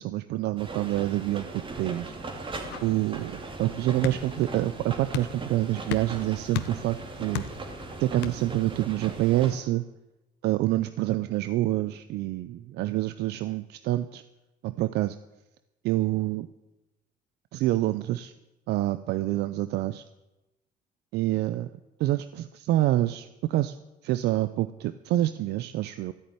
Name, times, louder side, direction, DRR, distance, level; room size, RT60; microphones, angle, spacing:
voice 1, 0.0-2.1 2.8-7.5 8.0-9.8 10.4-14.2 14.6-15.2 15.8-16.5 17.5-18.3 18.7-20.0 21.1-21.7 22.0-23.7 24.0-26.1, right 15 dB, 80° right, 13 dB, 0.6 m, -27 dB
sound 1, 0.6-9.5, right 3 dB, 30° right, 2.6 m, -39 dB
sound 2, 2.0-8.6, left 11 dB, 90° left, 1.0 m, -39 dB
13.5 x 8.5 x 9.7 m, 1.0 s
cardioid pair, 110°, 17 cm